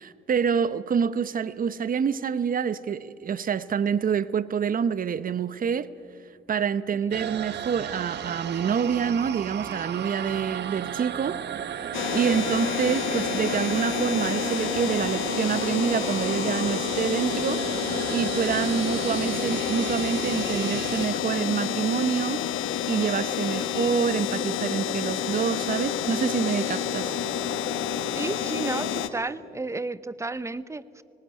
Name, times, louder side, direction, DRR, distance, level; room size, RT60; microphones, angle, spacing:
voice 1, 0.0-5.9 6.5-11.4 12.1-17.6 18.1-22.4 22.9-27.3, right 7 dB, 45° right, 0.8 m, -27 dB
sound 1, 7.1-21.1, right 8 dB, 60° right, 1.2 m, -34 dB
sound 2, 11.9-29.1, left 9 dB, 80° left, 1.2 m, -29 dB
voice 2, 28.1-31.0, right 3 dB, 15° right, 0.7 m, -33 dB
19.5 x 18.5 x 9.7 m
cardioid pair, 90°, 20 cm